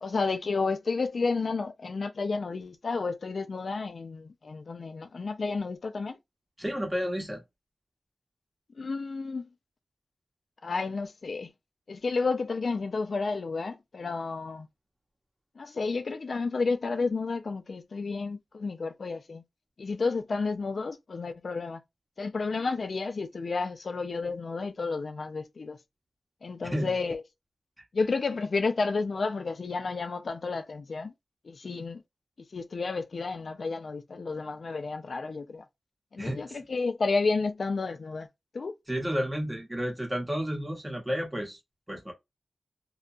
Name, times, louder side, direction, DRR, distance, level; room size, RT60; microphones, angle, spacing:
voice 1, 0.0-6.2 8.8-9.5 10.6-11.5 11.9-14.7 15.6-19.4 19.8-21.8 22.2-25.8 26.4-27.2 27.9-31.1 31.4-32.0 32.5-35.6 36.1-38.3 38.5-38.7, left 4 dB, 60° left, 0.4 m, -31 dB
voice 2, 6.6-7.4 26.7-26.9 36.2-36.4 38.9-41.6 41.9-42.1, equal, 10° right, 0.8 m, -31 dB
2.7 x 2.3 x 2.4 m
wide cardioid pair, 135°, 0 cm